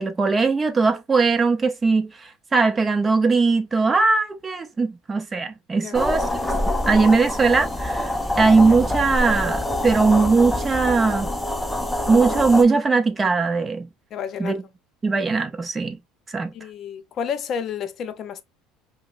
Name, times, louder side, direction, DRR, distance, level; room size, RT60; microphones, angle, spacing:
voice 1, 0.0-6.2 6.9-11.3 12.1-13.9 14.4-14.6 15.0-16.0 16.3-16.5, right 4 dB, 20° right, 0.7 m, -20 dB
voice 2, 5.8-6.1 14.1-14.6 16.5-18.4, left 7 dB, 45° left, 0.6 m, -31 dB
sound 1, 5.9-12.6, left 1 dB, 5° left, 0.6 m, -25 dB
4.9 x 2.1 x 2.5 m
supercardioid pair, 110°, 0 cm